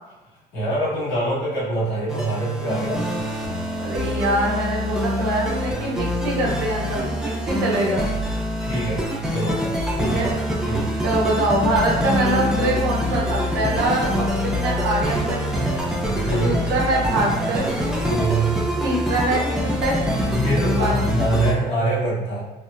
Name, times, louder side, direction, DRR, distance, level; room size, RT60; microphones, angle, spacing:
voice 1, 0.5-3.1 8.6-9.0 9.3-9.6 10.0-10.3 10.6-10.9 16.2-16.6 18.0-18.5 20.3-22.4, right 1 dB, 90° left, -10 dB, 1.5 m, -24 dB
sound 1, 2.1-21.5, equal, 5° right, 0.4 m, -25 dB
voice 2, 3.8-8.0 10.0-10.4 11.0-15.4 16.4-17.7 18.8-20.0 20.7-21.1, right 1 dB, 80° right, -3 dB, 0.9 m, -24 dB
3.2 x 2.0 x 2.5 m, 1.2 s
cardioid pair, 110°, 17 cm